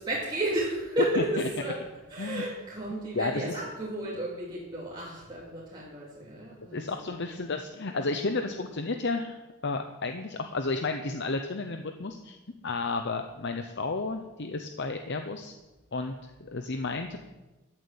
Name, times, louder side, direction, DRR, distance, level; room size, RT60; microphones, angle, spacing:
voice 1, 0.0-1.8 2.1-7.4 8.3-8.4, right 1 dB, 20° right, -6 dB, 2.7 m, -33 dB
voice 2, 2.9-3.6 6.7-12.4 12.6-15.5 15.9-17.2, left 3 dB, 55° left, 5 dB, 0.9 m, -32 dB
14.0 x 7.7 x 8.9 m, 1.1 s
head